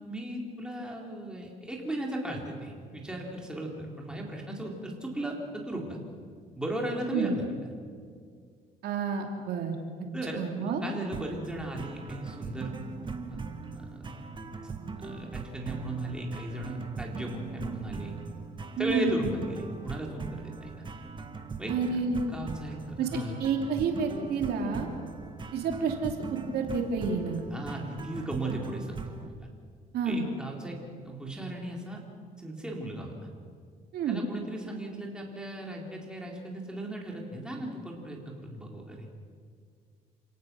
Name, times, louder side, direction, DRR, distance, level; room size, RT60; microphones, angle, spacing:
voice 1, 0.0-6.0 6.6-7.4 10.1-13.0 13.3-13.4 13.7-14.2 14.9-18.2 18.8-20.8 21.6-21.7 22.3-23.4 27.5-29.3 30.0-32.0 32.4-33.1 34.1-39.1, right 1 dB, 5° right, -1 dB, 4.1 m, -36 dB
voice 2, 8.8-9.8 10.4-10.8 18.8-19.3 21.7-22.2 23.0-24.9 25.5-27.4 29.9-30.3 33.9-34.2, right 5 dB, 70° right, 2 dB, 2.8 m, -29 dB
sound 1, 11.1-29.3, right 4 dB, 30° right, 1.6 m, -40 dB
27.5 x 18.0 x 6.3 m, 2.1 s
cardioid pair, 110°, 17 cm